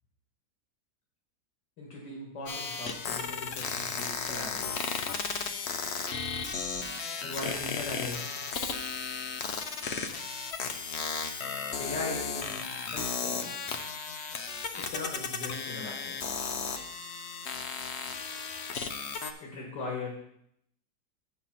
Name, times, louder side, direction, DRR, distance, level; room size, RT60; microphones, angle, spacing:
voice 1, 1.8-4.8 7.2-8.4 11.8-13.5 14.8-16.1 19.4-20.1, left 2 dB, 85° left, -3 dB, 2.4 m, -39 dB
sound 1, 2.5-19.3, left 5 dB, 55° left, 0.7 m, -35 dB
7.9 x 5.8 x 5.8 m, 0.74 s
omnidirectional pair, 1.9 m